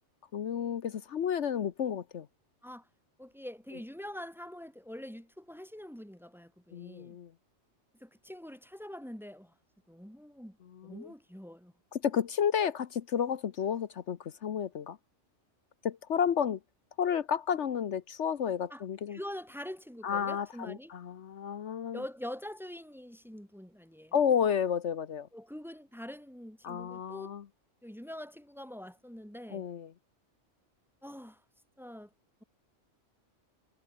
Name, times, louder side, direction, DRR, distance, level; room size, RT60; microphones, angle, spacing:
voice 1, 0.3-2.3 6.7-7.3 10.7-11.1 11.9-15.0 15.8-16.6 17.0-19.2 20.0-22.0 24.1-25.3 26.6-27.4 29.5-29.9, left 8 dB, 70° left, 1.2 m, -31 dB
voice 2, 3.2-7.2 8.0-9.5 9.9-10.6 10.8-11.7 18.7-18.8 19.1-20.9 21.9-24.2 25.3-27.3 27.8-29.7 31.0-31.4 31.8-32.1, equal, ahead, 2.2 m, -44 dB
omnidirectional pair, 1.2 m